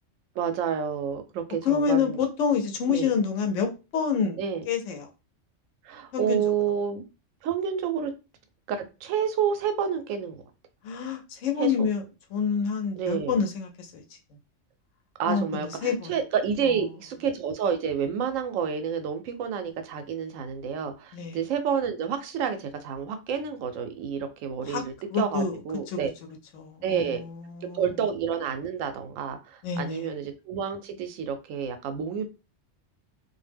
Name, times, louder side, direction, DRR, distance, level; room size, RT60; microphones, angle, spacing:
voice 1, 0.4-2.2 2.9-3.1 4.4-4.6 5.8-7.0 7.4-8.1 8.7-10.4 11.6-11.9 13.0-13.4 15.2-26.1 26.8-27.2 27.6-32.3, right 7 dB, 90° right, 1.0 m, -29 dB
voice 2, 1.6-5.1 6.1-6.4 10.8-12.0 12.3-14.0 15.3-16.2 16.6-16.8 21.1-21.4 24.6-24.8 25.1-25.6 25.9-26.0 26.5-27.9 29.6-30.1, left 6 dB, 75° left, 1.0 m, -28 dB
2.4 x 2.1 x 3.3 m
omnidirectional pair, 1.3 m